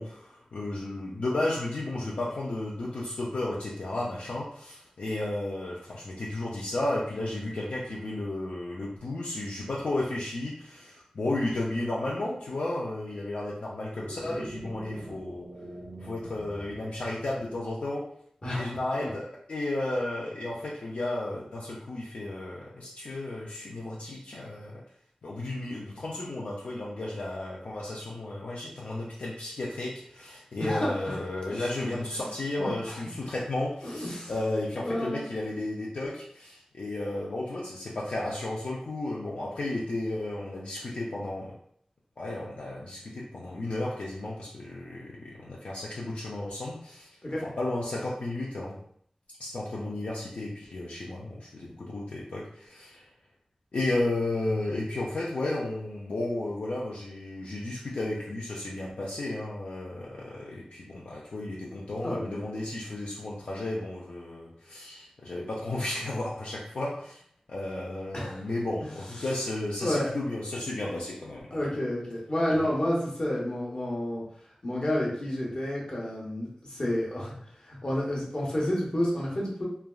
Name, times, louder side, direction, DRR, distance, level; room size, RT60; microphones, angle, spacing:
voice 1, 0.0-15.5 16.0-18.0 18.5-24.8 25.2-41.5 42.2-47.1 47.4-48.8 49.4-53.1 53.7-67.2 67.5-71.7 72.5-72.7, left 2 dB, 85° left, -5 dB, 0.5 m, -33 dB
sound 1, 13.9-17.6, right 1 dB, 30° right, 0.4 m, -43 dB
voice 2, 18.4-19.1 30.6-31.2 31.5-31.7 32.1-32.3 32.6-33.0 33.8-34.3 34.8-35.2 47.2-47.4 62.0-62.4 68.1-68.4 68.8-68.9 69.8-70.1 71.5-74.2 74.6-77.4 77.6-79.6, left 1 dB, 50° left, -4 dB, 1.0 m, -30 dB
3.2 x 2.4 x 2.3 m, 0.65 s
wide cardioid pair, 55°, 2 cm